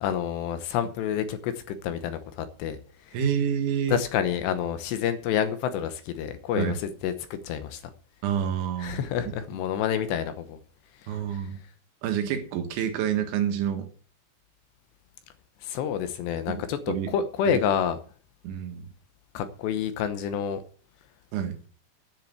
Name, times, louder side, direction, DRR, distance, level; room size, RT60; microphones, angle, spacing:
voice 1, 0.0-2.8 3.1-3.2 3.9-7.8 8.8-10.6 11.0-11.4 15.6-18.0 19.3-20.6, left 8 dB, 80° left, 2.9 m, -28 dB
voice 2, 3.1-4.0 6.5-6.8 8.2-9.0 11.1-11.6 12.0-13.9 16.5-17.1 17.5-17.6 18.4-18.9 21.3-21.6, right 8 dB, 80° right, 3.9 m, -28 dB
10.0 x 7.6 x 7.6 m
omnidirectional pair, 5.4 m